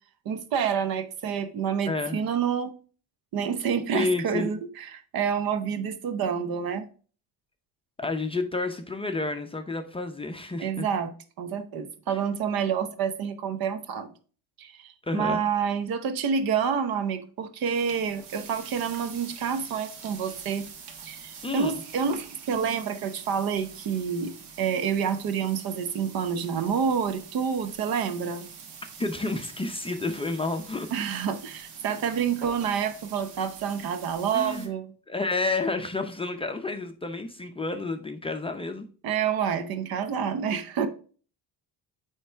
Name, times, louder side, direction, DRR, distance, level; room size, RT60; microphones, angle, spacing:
voice 1, 0.2-2.7 3.3-6.9 10.6-11.1 11.4-14.1 14.6-20.7 21.0-28.5 30.9-34.9 39.0-40.9, right 7 dB, 65° right, 0.8 m, -28 dB
voice 2, 1.9-2.2 3.9-4.6 8.0-10.9 12.1-12.2 15.0-15.5 21.4-21.8 29.0-30.9 34.3-34.7 35.1-38.9, left 3 dB, 15° left, 0.5 m, -30 dB
sound 1, 17.7-34.7, right 6 dB, 90° right, 1.2 m, -46 dB
8.8 x 3.2 x 3.4 m
cardioid pair, 115°, 39 cm